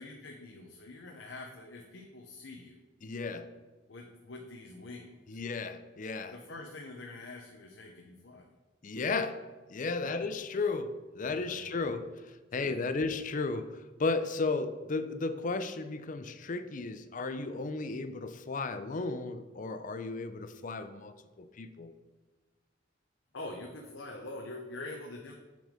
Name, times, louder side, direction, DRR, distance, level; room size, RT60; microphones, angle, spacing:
voice 1, 0.0-2.8 3.9-5.4 6.3-8.5 10.0-10.2 11.2-12.0 12.5-13.1 23.3-25.3, left 2 dB, 75° left, 1 dB, 0.9 m, -45 dB
voice 2, 3.0-3.5 5.3-6.4 8.8-9.4 9.7-12.1 12.5-21.9, left 3 dB, 45° left, 10 dB, 0.5 m, -34 dB
6.9 x 6.3 x 5.1 m, 1.2 s
head